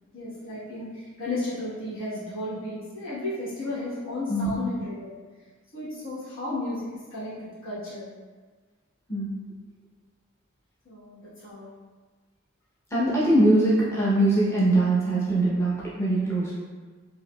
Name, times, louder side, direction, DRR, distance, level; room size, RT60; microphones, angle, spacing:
voice 1, 0.1-5.2 5.7-8.1 10.8-11.7, left 2 dB, 70° left, -11 dB, 1.2 m, -34 dB
voice 2, 4.3-4.6 9.1-9.3 12.9-16.5, right 1 dB, 15° left, -8 dB, 0.6 m, -22 dB
4.6 x 2.6 x 2.2 m, 1.4 s
head